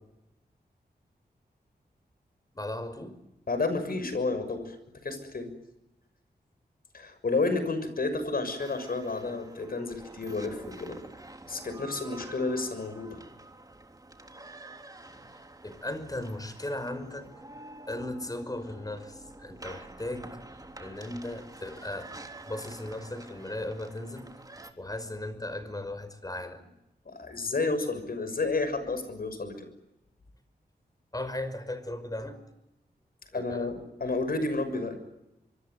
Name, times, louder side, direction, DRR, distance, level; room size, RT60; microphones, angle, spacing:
voice 1, 2.5-3.2 15.3-17.3 17.9-20.4 20.8-22.1 22.4-24.3 24.8-26.7 27.2-27.3 31.1-32.4 33.3-33.7, left 1 dB, 20° left, 12 dB, 5.4 m, -37 dB
voice 2, 3.5-4.8 5.0-5.5 6.9-11.0 11.5-13.2 27.0-29.7 33.3-35.0, left 3 dB, 60° left, 10 dB, 6.3 m, -31 dB
sound 1, 8.6-24.7, right 2 dB, 20° right, 3.3 m, -48 dB
25.0 x 24.5 x 9.3 m, 0.92 s
wide cardioid pair, 80°, 17 cm